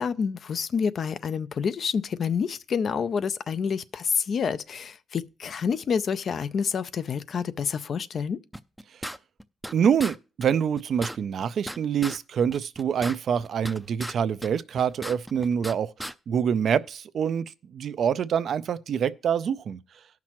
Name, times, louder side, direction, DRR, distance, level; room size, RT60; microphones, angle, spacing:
voice 1, 0.0-8.4, left 6 dB, 60° left, 0.4 m, -28 dB
sound 1, 8.5-9.7 10.0-10.1 10.4-10.5 10.8-12.2 12.5-14.1 14.4-15.7 16.0-16.1, equal, ahead, 0.4 m, -36 dB
voice 2, 9.7-19.8, right 7 dB, 70° right, 0.4 m, -26 dB
17.5 x 5.9 x 3.0 m
cardioid pair, 75°, 0 cm